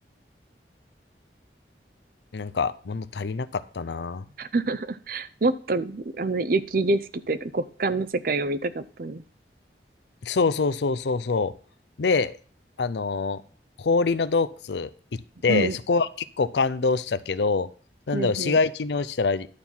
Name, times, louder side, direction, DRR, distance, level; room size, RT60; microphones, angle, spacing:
voice 1, 2.3-4.2 10.2-11.5 12.0-12.3 12.8-13.4 13.8-16.1 16.4-17.7 18.1-19.5, left 4 dB, 75° left, 14 dB, 0.6 m, -25 dB
voice 2, 4.4-9.2 15.5-15.8 18.1-18.6, right 3 dB, 55° right, 14 dB, 0.6 m, -27 dB
11.5 x 4.5 x 5.5 m, 0.43 s
head